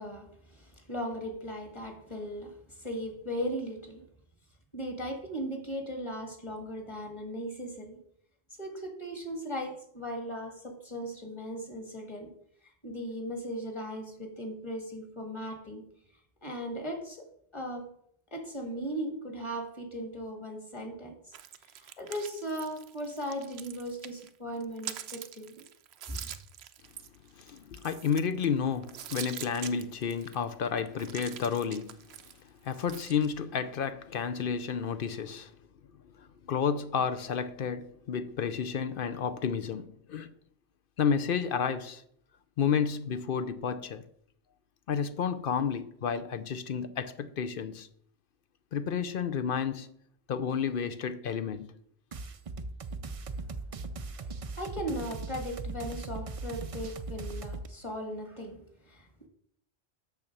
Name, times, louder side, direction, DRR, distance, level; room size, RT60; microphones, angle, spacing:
voice 1, 0.0-4.0 4.7-8.0 8.6-12.3 12.6-15.8 16.4-17.3 17.5-17.9 18.3-21.1 21.8-25.6 26.1-26.2 54.1-59.3, equal, 25° left, 1.8 m, -38 dB
sound 1, 21.3-24.3 24.6-28.4 28.8-30.4 30.8-33.3, right 10 dB, 75° right, 0.9 m, -44 dB
voice 2, 27.4-32.0 32.6-35.6 36.2-40.3 41.0-42.0 42.6-44.0 44.9-47.9 48.7-49.9 50.3-51.7, left 7 dB, 60° left, 0.7 m, -31 dB
sound 2, 52.1-57.7, right 3 dB, 45° right, 0.5 m, -39 dB
7.0 x 6.7 x 6.0 m
omnidirectional pair, 1.1 m